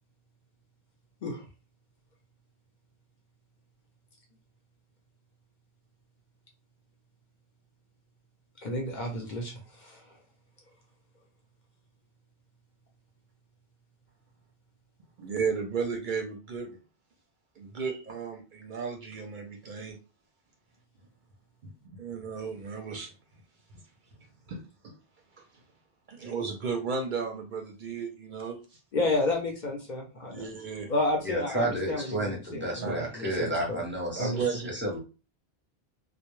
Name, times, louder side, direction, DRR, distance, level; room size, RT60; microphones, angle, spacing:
voice 1, 8.6-10.0 28.9-30.4 30.9-33.8 34.2-34.4, left 2 dB, 55° left, 1 dB, 0.7 m, -31 dB
voice 2, 15.2-16.8 17.6-20.0 21.6-23.1 23.7-23.8 24.5-25.0 25.4-25.5 26.1-28.8 30.3-30.9 32.8-33.4 34.2-34.7, right 5 dB, 60° right, 2 dB, 0.6 m, -34 dB
voice 3, 31.2-35.0, right 1 dB, 15° right, -2 dB, 0.6 m, -31 dB
2.1 x 2.0 x 3.0 m, 0.33 s
omnidirectional pair, 1.0 m